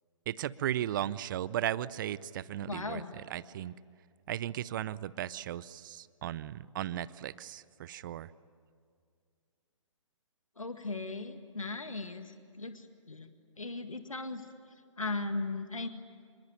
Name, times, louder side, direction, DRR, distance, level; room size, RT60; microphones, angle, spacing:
voice 1, 0.3-3.7 4.3-8.3, right 12 dB, 40° right, 19 dB, 0.7 m, -36 dB
voice 2, 2.7-3.1 10.6-13.3 13.6-14.4 15.0-15.9, left 3 dB, 85° left, 8 dB, 1.9 m, -37 dB
27.0 x 23.5 x 9.4 m, 2.2 s
figure-of-eight pair, 130°, 17 cm